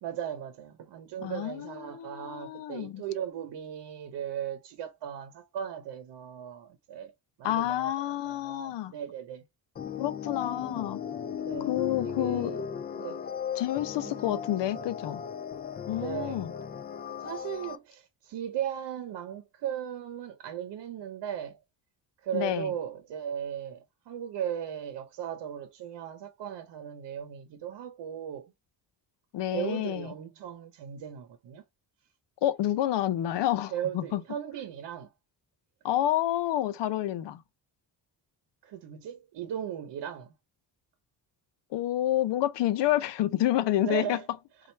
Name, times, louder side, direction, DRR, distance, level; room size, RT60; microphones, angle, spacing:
voice 1, 0.0-7.1 7.4-9.4 11.4-11.7 12.0-12.6 13.0-13.2 14.0-14.3 14.7-14.9 16.0-16.4 17.2-21.6 22.2-28.5 29.5-31.6 33.7-35.1 38.6-40.3 43.8-44.2, right 9 dB, 75° right, 0.9 m, -37 dB
voice 2, 1.2-3.0 7.4-8.9 10.0-11.0 11.7-12.5 13.6-15.2 15.9-16.5 22.3-22.7 29.3-30.1 32.4-34.2 35.8-37.4 41.7-44.2, left 13 dB, 80° left, 0.7 m, -29 dB
sound 1, 9.8-17.8, left 8 dB, 25° left, 0.3 m, -36 dB
4.2 x 2.5 x 4.4 m
cardioid pair, 130°, 42 cm